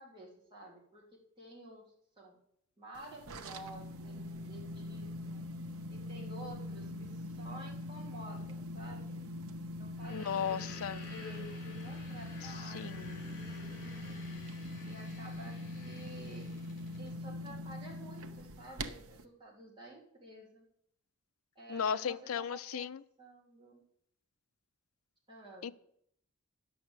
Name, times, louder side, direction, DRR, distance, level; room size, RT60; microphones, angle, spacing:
voice 1, 0.0-2.4 2.8-5.4 5.9-9.2 9.8-14.2 14.8-16.5 17.0-20.6 21.5-23.8 25.3-25.7, right 1 dB, 20° right, -4 dB, 3.4 m, -51 dB
sound 1, 3.0-19.2, left 1 dB, 85° right, 0.9 m, -43 dB
sound 2, 9.9-17.2, left 3 dB, 40° left, 3.5 m, -53 dB
voice 2, 10.1-11.0 12.7-13.2 21.7-23.0 25.6-25.7, left 7 dB, 80° left, 15 dB, 0.4 m, -36 dB
10.0 x 7.1 x 8.0 m, 0.72 s
head